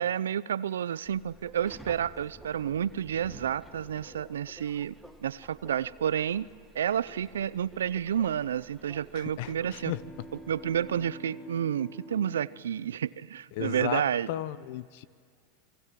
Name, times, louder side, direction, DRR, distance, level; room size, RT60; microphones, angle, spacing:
voice 1, 0.0-4.9 5.2-9.9 10.5-14.3, right 9 dB, 80° right, 0.6 m, -30 dB
Subway metro underground, 1.0-11.1, right 1 dB, ahead, 2.1 m, -52 dB
voice 2, 9.1-10.0 13.5-15.0, left 14 dB, 60° left, 0.9 m, -35 dB
sound 1, 9.4-13.4, right 1 dB, 20° left, 6.6 m, -47 dB
28.5 x 22.5 x 7.6 m
hypercardioid pair, 100°, 0 cm